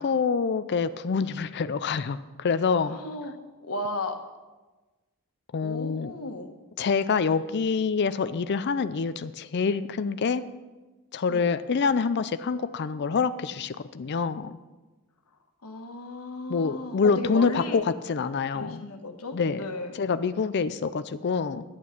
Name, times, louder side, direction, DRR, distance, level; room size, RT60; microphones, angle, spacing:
voice 1, 0.0-3.0 5.5-6.1 6.8-10.4 11.1-14.6 16.5-18.8 19.3-19.7 19.9-21.6, left 5 dB, 50° left, 12 dB, 0.4 m, -26 dB
voice 2, 2.8-4.2 5.6-6.5 11.3-11.5 15.6-17.8 18.5-19.9, left 2 dB, 75° left, 5 dB, 1.4 m, -35 dB
11.0 x 9.0 x 5.9 m, 1.2 s
head